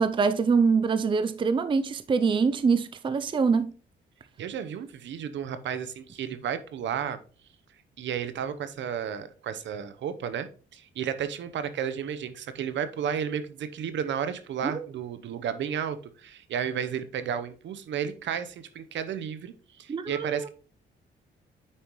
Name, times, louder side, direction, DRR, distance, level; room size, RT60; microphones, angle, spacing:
voice 1, 0.0-3.7 14.6-14.8 19.9-20.5, right 5 dB, 25° right, 0.5 m, -24 dB
voice 2, 4.4-7.2 8.0-20.5, right 8 dB, 70° right, 0.9 m, -33 dB
8.6 x 5.2 x 3.1 m
cardioid pair, 90°, 20 cm